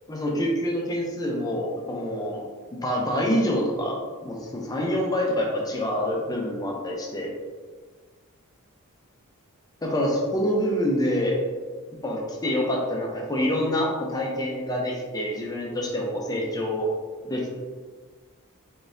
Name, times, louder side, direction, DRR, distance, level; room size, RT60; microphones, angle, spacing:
voice 1, 0.1-2.4 2.8-7.3 9.8-11.4 12.0-16.9 17.2-17.5, equal, 15° left, -2 dB, 0.5 m, -26 dB
3.7 x 3.5 x 2.6 m, 1.4 s
head